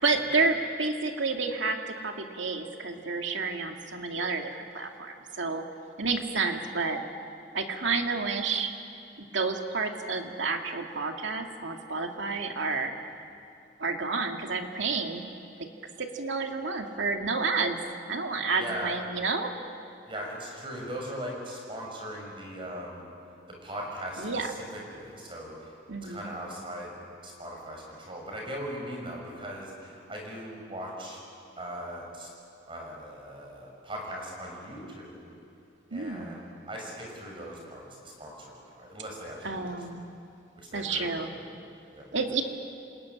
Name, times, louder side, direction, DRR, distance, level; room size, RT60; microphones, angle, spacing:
voice 1, 0.0-5.6 6.0-7.0 7.5-8.7 9.3-12.9 13.8-15.3 15.6-15.7 16.0-17.8 18.1-19.5 24.2-24.5 25.9-26.3 35.9-36.4 39.4-40.0 40.7-41.3 42.1-42.4, right 4 dB, 85° right, 3 dB, 2.3 m, -30 dB
voice 2, 18.5-18.9 20.0-23.1 23.6-25.7 26.0-31.2 31.6-32.3 32.7-35.3 35.9-39.6 40.6-41.5 41.9-42.2, equal, 25° right, -1 dB, 6.4 m, -40 dB
27.5 x 20.5 x 9.8 m, 2.6 s
head